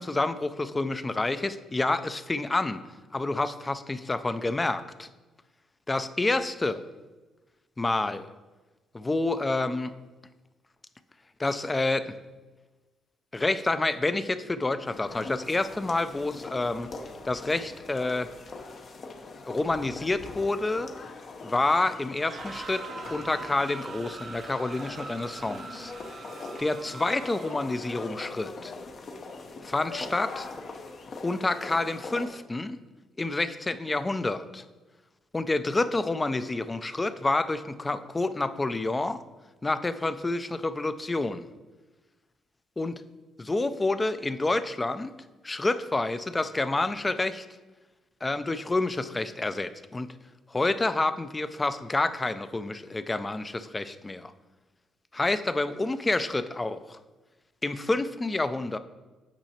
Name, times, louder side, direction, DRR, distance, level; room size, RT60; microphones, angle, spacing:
voice 1, 0.0-2.8 3.1-5.1 5.9-6.8 7.8-8.3 8.9-9.9 11.4-12.1 13.3-16.9 17.2-18.3 19.5-20.9 21.4-22.8 23.1-25.9 26.6-28.7 29.6-30.5 31.2-32.8 33.2-34.6 35.3-39.2 39.6-41.5 42.8-43.0 43.4-45.1 45.4-47.5 48.2-50.1 50.5-54.3 55.1-57.0 57.6-58.8, left 2 dB, 20° left, 11 dB, 0.4 m, -28 dB
sound 1, 14.8-32.3, left 3 dB, 50° left, 0.7 m, -42 dB
sound 2, 22.1-27.8, right 4 dB, 55° right, 0.5 m, -43 dB
8.8 x 5.5 x 2.8 m, 1.2 s
cardioid pair, 90°, 0 cm